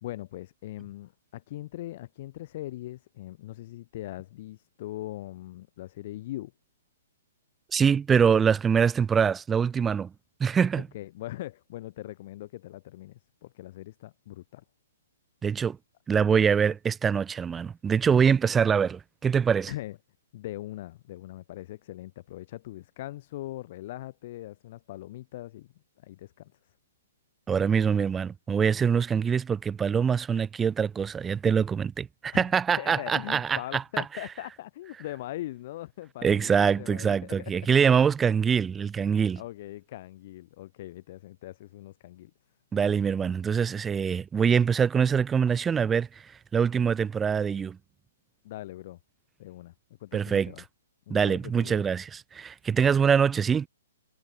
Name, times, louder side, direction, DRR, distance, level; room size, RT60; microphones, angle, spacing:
voice 1, 0.0-6.5 10.9-14.6 19.7-20.0 20.3-25.7 26.0-26.5 32.3-32.5 32.8-37.5 39.4-42.3 48.4-49.0 49.4-49.7 50.0-50.6 51.1-51.8, left 15 dB, 40° left, 1.0 m, -40 dB
voice 2, 7.7-10.1 10.4-10.9 15.4-15.8 16.1-19.7 27.5-33.8 36.2-39.4 42.7-46.3 46.5-47.8 50.1-50.5 51.1-53.7, right 7 dB, 10° right, 0.3 m, -24 dB
hypercardioid pair, 160°, 0 cm